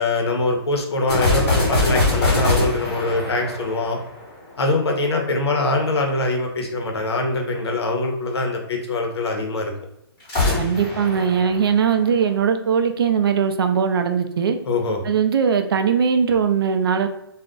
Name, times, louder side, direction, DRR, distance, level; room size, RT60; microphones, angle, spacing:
voice 1, 0.0-4.0 4.6-9.7 14.6-15.0, left 2 dB, 75° left, 2 dB, 0.8 m, -23 dB
sound 1, 1.1-4.5 10.2-12.3, left 2 dB, 15° left, 1.1 m, -22 dB
voice 2, 10.6-14.6 15.0-17.1, right 7 dB, 60° right, 7 dB, 0.4 m, -20 dB
2.4 x 2.1 x 3.6 m, 0.81 s
hypercardioid pair, 170°, 14 cm